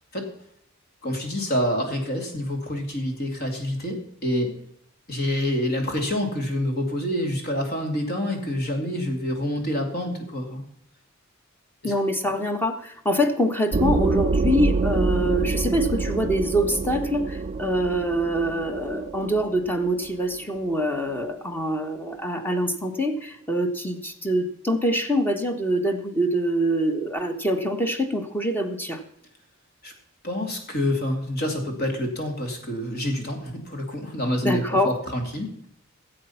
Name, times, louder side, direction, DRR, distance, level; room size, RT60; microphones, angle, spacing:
voice 1, 1.0-4.5 5.1-10.6 11.8-11.9 12.3-12.4 29.8-29.9 30.2-35.5, left 1 dB, 50° left, 3 dB, 2.6 m, -27 dB
voice 2, 11.8-29.0 34.4-34.9, equal, 10° left, 6 dB, 1.2 m, -25 dB
sound 1, 13.7-21.1, right 4 dB, 35° right, 0.4 m, -26 dB
15.5 x 7.8 x 5.7 m, 0.69 s
head